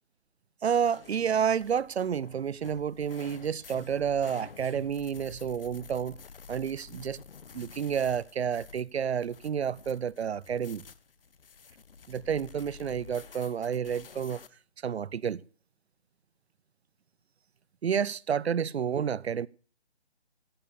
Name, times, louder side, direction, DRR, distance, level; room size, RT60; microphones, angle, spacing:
voice 1, 0.6-6.2 6.5-7.2 7.5-10.8 12.1-14.4 14.8-15.4 17.8-19.5, right 7 dB, 70° right, 0.6 m, -30 dB
sound 1, 0.7-14.5, left 6 dB, 55° left, 0.9 m, -50 dB
16.0 x 8.6 x 6.8 m
hypercardioid pair, 165°, 34 cm